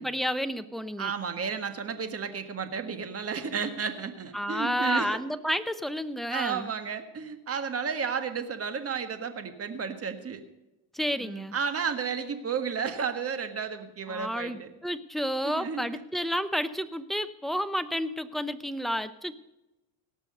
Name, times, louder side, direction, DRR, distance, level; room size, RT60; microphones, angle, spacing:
voice 1, 0.0-1.1 4.3-6.7 10.9-11.6 14.1-19.3, equal, ahead, 11 dB, 0.7 m, -31 dB
voice 2, 1.0-5.2 6.3-10.4 11.2-14.7 15.4-15.8, right 6 dB, 35° right, 9 dB, 1.7 m, -32 dB
18.0 x 6.5 x 6.6 m, 0.97 s
supercardioid pair, 95°, 41 cm